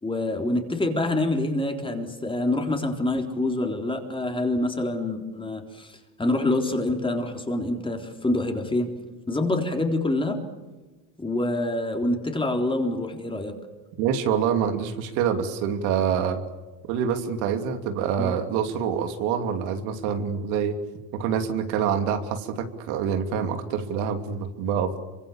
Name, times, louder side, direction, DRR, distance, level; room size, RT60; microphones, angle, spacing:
voice 1, 0.0-8.9 9.3-10.4 11.2-13.6 18.2-18.3, left 2 dB, 10° left, 4 dB, 3.7 m, -26 dB
voice 2, 14.0-16.4 16.9-20.8 21.1-25.0, right 7 dB, 85° right, 7 dB, 3.0 m, -26 dB
26.5 x 24.5 x 7.3 m, 1.2 s
cardioid pair, 125°, 43 cm